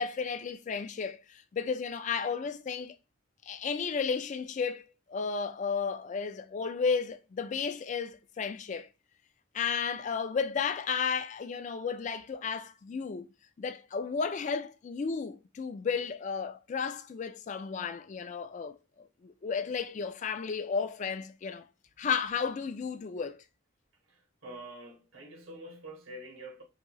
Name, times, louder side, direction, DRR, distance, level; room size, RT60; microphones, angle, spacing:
voice 1, 0.0-2.9 3.4-8.9 9.5-13.3 13.6-18.8 19.2-21.6 22.0-23.4, left 5 dB, 40° left, 0.3 m, -33 dB
voice 2, 24.0-26.6, right 1 dB, 80° right, 1.5 m, -46 dB
3.6 x 2.7 x 3.0 m
head